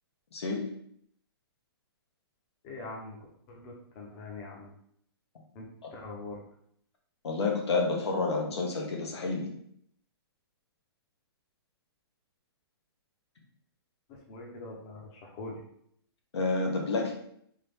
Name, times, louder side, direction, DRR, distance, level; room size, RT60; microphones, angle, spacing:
voice 1, 0.3-0.7 5.8-5.9 7.2-9.5 16.3-17.1, left 3 dB, 85° left, 0 dB, 1.1 m, -29 dB
voice 2, 2.6-3.2 3.5-4.7 5.5-6.4 14.1-15.6, left 2 dB, 30° left, -1 dB, 0.8 m, -43 dB
3.7 x 2.9 x 3.4 m, 0.68 s
hypercardioid pair, 155°, 14 cm